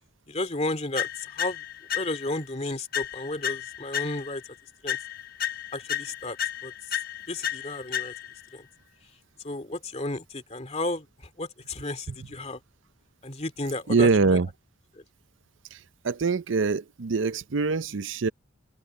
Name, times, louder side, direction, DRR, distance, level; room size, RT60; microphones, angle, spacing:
voice 1, 0.3-1.6 1.9-4.4 4.8-5.0 5.7-6.4 6.6-6.7 7.3-8.1 8.5-8.6 9.4-12.6 13.2-14.1 14.9-15.0, left 2 dB, 35° left, 2.3 m, -33 dB
sound 1, 1.0-2.4 2.9-4.5 4.9-8.5, left 9 dB, 50° left, 1.0 m, -33 dB
voice 2, 13.9-14.5 15.7-18.3, right 4 dB, 75° right, 0.6 m, -24 dB
open air
head